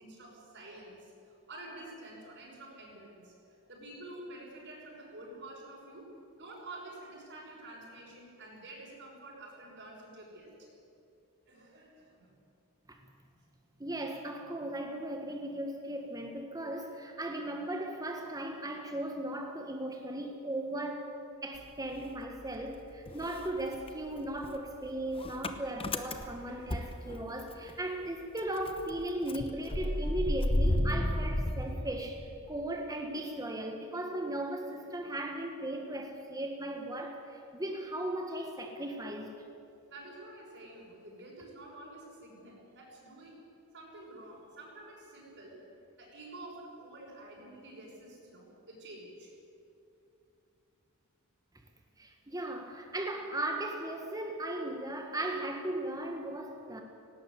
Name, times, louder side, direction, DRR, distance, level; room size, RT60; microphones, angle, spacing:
voice 1, 0.0-10.7 11.5-12.4 26.2-27.0 39.9-43.4 43.7-45.6 46.0-49.3, right 1 dB, 55° right, -5 dB, 6.4 m, -49 dB
voice 2, 13.8-39.3 52.0-56.8, right 1 dB, 15° right, 3 dB, 1.6 m, -37 dB
Motor vehicle (road) / Engine starting, 21.5-22.8 23.1-27.7 28.0-28.1 28.4-32.5, left 1 dB, 25° left, 1.0 m, -33 dB
18.5 x 18.0 x 8.2 m, 2.7 s
head